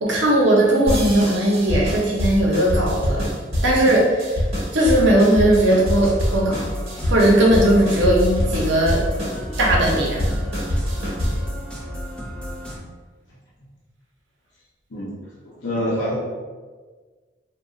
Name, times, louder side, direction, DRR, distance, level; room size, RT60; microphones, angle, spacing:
voice 1, 0.0-3.3 3.6-4.4 4.7-6.7 7.0-9.0 9.6-10.4, right 1 dB, 80° right, -3 dB, 0.7 m, -18 dB
sound 1, 0.9-11.5, equal, 35° right, 1.0 m, -25 dB
sound 2, 6.0-12.8, equal, 5° left, 0.6 m, -32 dB
voice 2, 15.6-16.2, equal, 80° left, -6 dB, 0.6 m, -25 dB
2.4 x 2.2 x 3.7 m, 1.4 s
head